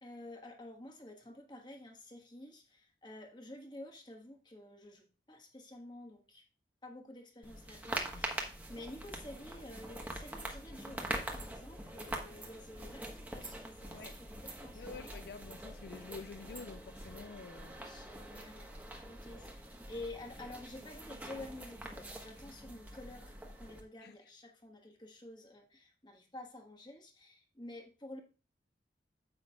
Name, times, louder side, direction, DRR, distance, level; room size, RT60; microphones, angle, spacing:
voice 1, 0.0-6.4 6.8-15.1 17.8-18.7 19.0-28.2, left 1 dB, 25° left, 1.5 m, -50 dB
sound 1, 7.4-23.8, right 1 dB, 10° right, 1.2 m, -44 dB
voice 2, 14.7-17.8 24.0-24.2, left 4 dB, 60° left, 0.4 m, -48 dB
9.7 x 8.2 x 2.4 m
head